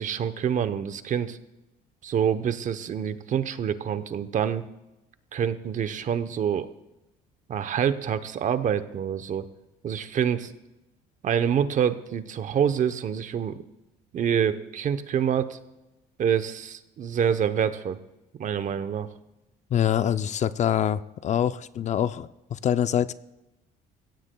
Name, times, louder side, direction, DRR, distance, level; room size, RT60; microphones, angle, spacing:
voice 1, 0.0-1.4 2.0-4.7 5.3-6.7 7.5-9.5 9.8-10.5 11.2-13.6 14.1-15.6 16.2-18.0 18.3-19.1, right 8 dB, 50° right, 12 dB, 0.8 m, -26 dB
voice 2, 19.7-23.1, left 10 dB, 45° left, 14 dB, 0.5 m, -25 dB
21.0 x 16.5 x 2.3 m, 0.96 s
cardioid pair, 110°, 17 cm